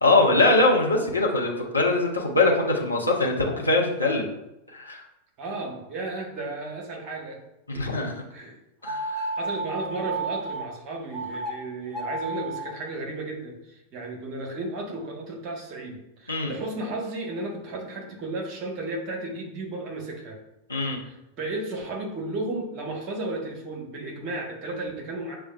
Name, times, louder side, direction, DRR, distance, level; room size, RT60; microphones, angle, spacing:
voice 1, 0.0-4.3 4.7-5.0 7.7-8.2 8.8-9.4 16.3-16.5 20.7-21.0, left 2 dB, 80° left, -1 dB, 0.7 m, -22 dB
voice 2, 5.4-7.4 7.7-8.0 8.3-8.6 9.4-20.4 21.0-25.4, right 2 dB, 40° right, 1 dB, 1.0 m, -34 dB
sound 1, 8.8-10.7 11.1-11.5 11.9-12.7, right 3 dB, 5° right, 0.7 m, -31 dB
6.7 x 2.3 x 2.2 m, 0.87 s
figure-of-eight pair, 90°, 0 cm